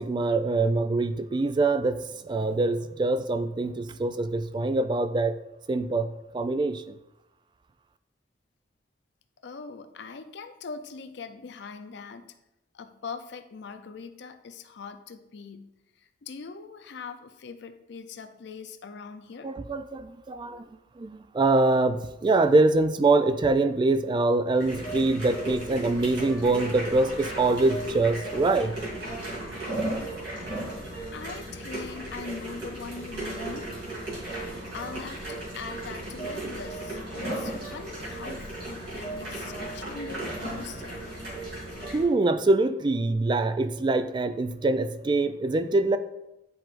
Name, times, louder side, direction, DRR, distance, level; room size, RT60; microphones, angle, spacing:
voice 1, 0.0-5.3 5.7-7.0 19.4-20.6 21.0-28.8 38.3-38.4 41.9-46.0, right 2 dB, 25° right, 10 dB, 0.3 m, -24 dB
voice 2, 9.4-12.3 12.7-15.7 16.2-19.5 31.1-33.7 34.7-41.1, left 5 dB, 70° left, 9 dB, 0.5 m, -41 dB
sound 1, 24.6-42.0, right 1 dB, 65° right, 2.4 m, -35 dB
9.8 x 4.5 x 2.5 m, 0.90 s
head